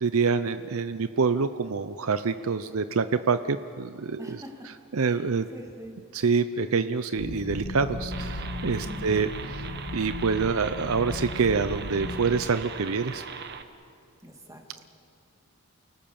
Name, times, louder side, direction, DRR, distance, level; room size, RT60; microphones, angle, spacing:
voice 1, 0.0-4.3 4.9-5.5 6.1-9.3 9.9-13.2, right 5 dB, 70° right, 11 dB, 0.6 m, -26 dB
voice 2, 4.2-4.7 5.0-5.2 5.5-5.9 8.9-9.2 14.2-14.9, equal, 15° right, 2 dB, 2.5 m, -43 dB
sound 1, 7.2-12.4, left 1 dB, 90° left, 2.0 m, -36 dB
sound 2, 8.1-13.6, right 6 dB, 50° right, 1.1 m, -40 dB
29.0 x 18.5 x 7.1 m, 2.5 s
head